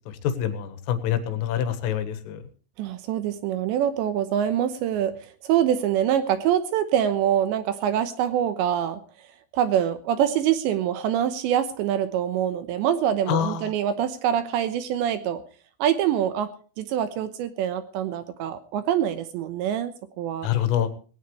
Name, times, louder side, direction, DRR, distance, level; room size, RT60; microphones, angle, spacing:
voice 1, 0.4-2.4 13.3-13.7 20.4-20.9, left 10 dB, 85° left, 10 dB, 4.0 m, -26 dB
voice 2, 2.8-9.0 9.5-15.4 15.8-16.5 16.8-20.5, right 10 dB, 75° right, 10 dB, 2.9 m, -25 dB
18.5 x 17.5 x 3.2 m, 0.39 s
omnidirectional pair, 5.7 m